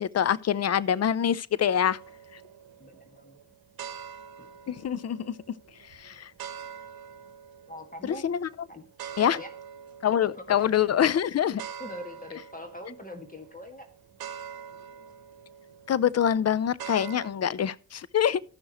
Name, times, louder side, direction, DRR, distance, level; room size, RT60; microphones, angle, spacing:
voice 1, 0.0-2.0 4.7-5.3 5.9-6.3 8.0-8.5 9.2-9.4 10.0-11.6 15.9-18.4, left 9 dB, 40° left, 0.6 m, -25 dB
sound 1, 1.7-17.3, right 8 dB, 70° right, 1.0 m, -45 dB
voice 2, 2.8-3.4 4.4-4.5 7.7-8.2 8.7-8.8 9.3-9.5 10.3-10.9 11.8-13.9, left 1 dB, 20° left, 1.9 m, -42 dB
14.0 x 6.2 x 3.0 m
supercardioid pair, 55°, 38 cm